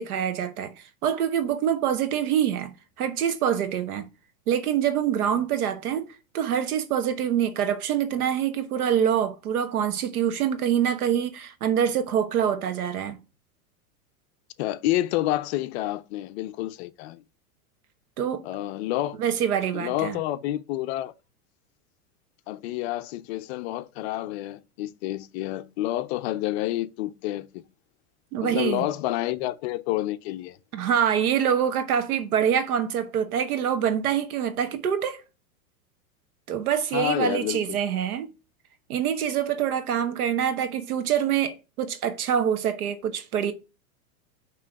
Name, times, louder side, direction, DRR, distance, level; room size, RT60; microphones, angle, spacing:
voice 1, 0.0-4.1 4.5-6.0 6.3-13.2 18.2-18.4 19.2-20.2 28.3-28.8 30.7-35.2 36.5-38.3 38.9-43.5, right 9 dB, 85° right, 1.2 m, -25 dB
voice 2, 14.6-17.2 18.4-19.2 19.7-21.1 22.5-27.6 28.4-30.6 36.9-37.8, left 15 dB, 50° left, 0.5 m, -29 dB
6.0 x 3.1 x 5.0 m
supercardioid pair, 135°, 43 cm